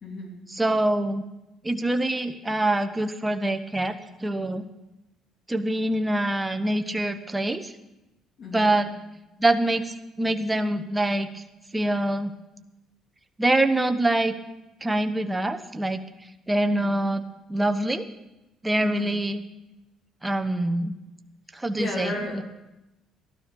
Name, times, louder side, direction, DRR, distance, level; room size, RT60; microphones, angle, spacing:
voice 1, 0.0-0.4 8.4-8.8 16.7-16.9 18.8-19.2 21.7-22.4, left 2 dB, 55° left, -1 dB, 3.1 m, -34 dB
voice 2, 0.5-1.2 1.6-3.9 4.2-4.6 5.5-7.7 8.5-8.9 9.4-11.4 11.7-12.3 13.4-14.4 14.8-16.0 16.5-17.2 17.5-18.0 18.6-19.4 20.2-20.9 21.5-22.4, right 1 dB, 15° right, 8 dB, 1.0 m, -25 dB
13.5 x 12.0 x 5.3 m, 0.96 s
supercardioid pair, 70°, 0 cm